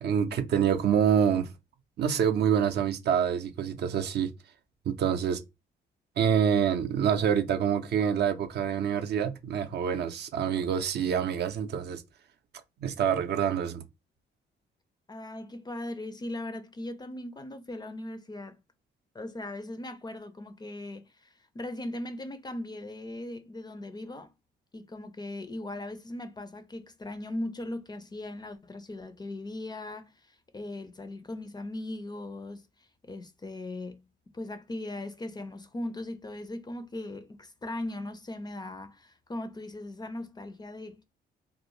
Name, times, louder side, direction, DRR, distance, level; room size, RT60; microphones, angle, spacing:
voice 1, 0.0-1.5 2.0-4.3 4.9-5.4 6.2-12.0 12.8-13.8, right 8 dB, 60° right, 0.5 m, -26 dB
voice 2, 15.1-18.6 19.1-24.3 24.7-32.6 33.1-34.1 34.3-41.0, left 1 dB, 20° left, 0.4 m, -39 dB
2.5 x 2.1 x 3.0 m
cardioid pair, 90°, 20 cm